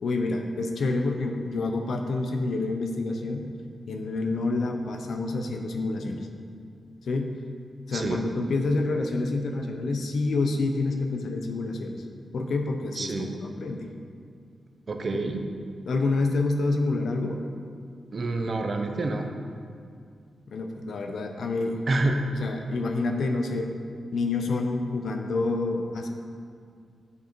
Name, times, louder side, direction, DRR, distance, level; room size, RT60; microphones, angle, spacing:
voice 1, 0.0-3.5 3.9-6.3 7.0-7.4 7.9-12.0 12.3-13.9 15.1-15.2 15.9-17.4 20.5-21.8 22.4-23.7 24.1-26.1, left 3 dB, 65° left, 4 dB, 0.7 m, -28 dB
voice 2, 7.9-8.2 13.0-13.3 14.9-15.4 18.1-19.3 21.9-22.2, right 2 dB, 35° right, 4 dB, 0.6 m, -27 dB
9.7 x 5.3 x 4.5 m, 2.3 s
wide cardioid pair, 170°, 0 cm